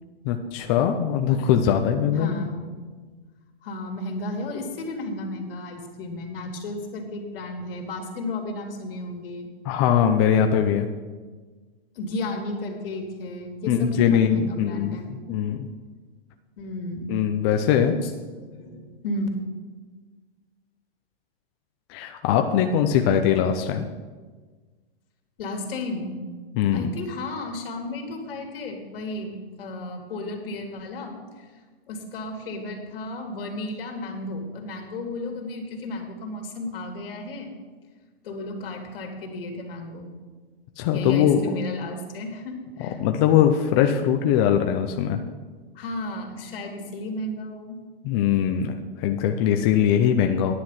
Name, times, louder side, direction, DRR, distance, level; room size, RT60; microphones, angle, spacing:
voice 1, 0.3-2.4 9.6-10.9 13.7-15.0 15.3-15.7 17.1-18.0 21.9-23.9 26.6-26.9 40.8-41.4 43.0-45.2 48.0-50.5, left 9 dB, 25° left, 5 dB, 0.5 m, -21 dB
voice 2, 2.1-2.6 3.0-3.2 3.6-9.5 11.9-15.1 16.6-17.1 18.0-18.8 19.0-19.3 25.4-26.2 26.7-31.5 31.9-37.6 38.2-40.1 40.9-43.0 45.7-47.8, left 2 dB, 60° left, 3 dB, 2.7 m, -33 dB
10.5 x 9.8 x 5.8 m, 1.4 s
hypercardioid pair, 155°, 31 cm